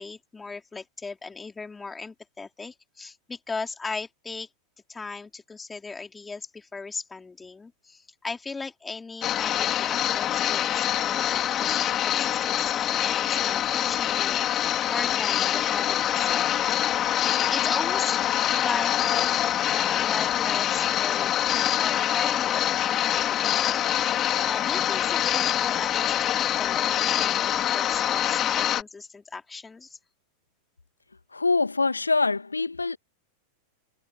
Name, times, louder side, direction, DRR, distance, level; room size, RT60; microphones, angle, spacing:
voice 1, 0.0-4.5 4.9-16.5 17.5-18.9 19.6-22.6 22.9-30.0, left 4 dB, 10° left, 4.5 m, -37 dB
sound 1, 9.2-28.8, left 11 dB, 30° left, 4.9 m, -25 dB
voice 2, 31.3-33.0, left 3 dB, 80° left, 2.1 m, -24 dB
figure-of-eight pair, 90°, 0 cm